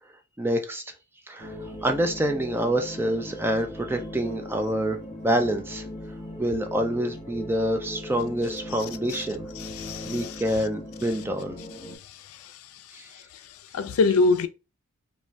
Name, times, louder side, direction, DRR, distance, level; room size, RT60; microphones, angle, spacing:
voice 1, 0.4-0.8 1.3-1.5 1.8-5.0 5.2-5.8 6.4-9.5 10.0-11.6 12.9-13.1, right 1 dB, 10° right, 0.3 m, -26 dB
sound 1, 1.4-12.0, left 1 dB, 30° left, 1.2 m, -39 dB
voice 2, 9.6-10.4 12.0-12.6 13.1-13.2 13.7-14.5, left 3 dB, 80° left, 0.4 m, -25 dB
3.2 x 2.2 x 2.5 m
head